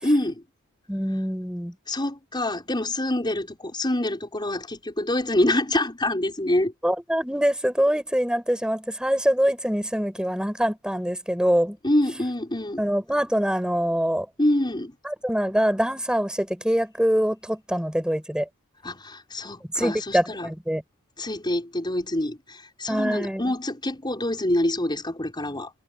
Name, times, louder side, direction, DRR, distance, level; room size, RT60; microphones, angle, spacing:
voice 1, 0.0-0.4 1.9-6.7 11.8-12.8 14.4-14.9 18.8-20.5 21.2-25.7, left 1 dB, 20° left, 5.5 m, -26 dB
voice 2, 0.9-1.7 6.8-11.8 12.8-14.3 15.0-18.5 19.7-20.8 22.9-23.5, equal, 5° right, 6.6 m, -24 dB
head